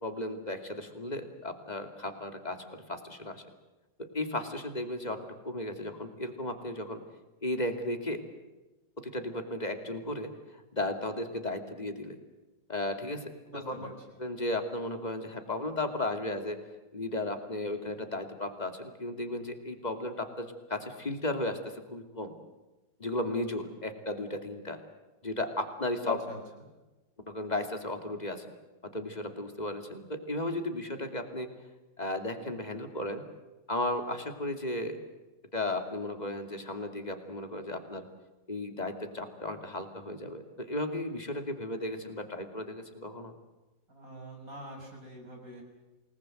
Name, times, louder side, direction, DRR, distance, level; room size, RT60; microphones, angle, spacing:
voice 1, 0.0-3.4 4.0-7.0 7.4-8.2 9.0-10.3 10.7-12.2 12.7-13.9 14.2-16.6 16.9-22.3 23.0-24.8 25.2-26.2 27.3-28.5 28.8-31.5 32.0-33.2 33.7-35.0 35.5-38.0 38.5-43.3, left 1 dB, 25° left, 6 dB, 2.8 m, -35 dB
voice 2, 13.5-13.9 26.0-26.4 43.9-45.6, right 1 dB, 50° right, 2 dB, 7.0 m, -46 dB
28.5 x 19.5 x 7.9 m, 1.1 s
omnidirectional pair, 1.9 m